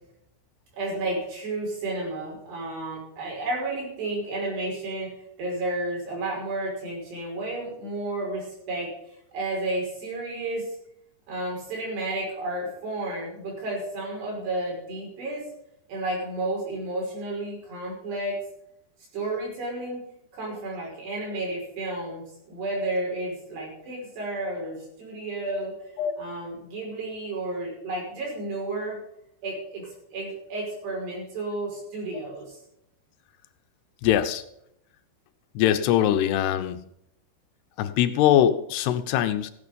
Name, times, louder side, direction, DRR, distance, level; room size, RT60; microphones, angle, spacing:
voice 1, 0.7-5.1 5.4-8.9 9.3-10.7 11.3-15.4 15.9-18.4 19.1-20.0 20.3-25.7 26.2-29.0 29.4-32.6, right 2 dB, 85° right, -2 dB, 7.7 m, -32 dB
voice 2, 34.0-34.4 35.6-36.8 37.8-39.5, left 11 dB, 85° left, 10 dB, 2.9 m, -22 dB
15.5 x 9.7 x 5.2 m, 0.76 s
omnidirectional pair, 4.7 m